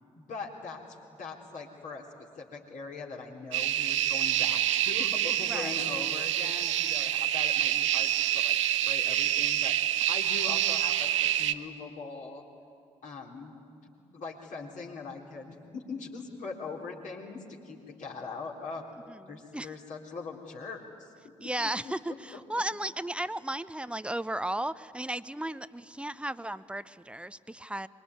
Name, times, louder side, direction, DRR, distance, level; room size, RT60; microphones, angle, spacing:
voice 1, 0.1-2.0 2.4-8.6 8.9-12.4 13.0-13.6 13.8-18.8 19.3-21.4 21.8-22.4, left 4 dB, 55° left, -1 dB, 4.1 m, -41 dB
sound 1, 3.5-11.5, right 12 dB, 75° right, 0.7 m, -27 dB
voice 2, 19.1-19.7 21.4-27.9, right 1 dB, 5° right, 15 dB, 0.8 m, -35 dB
25.0 x 23.5 x 9.6 m, 2.5 s
figure-of-eight pair, 45°, 16 cm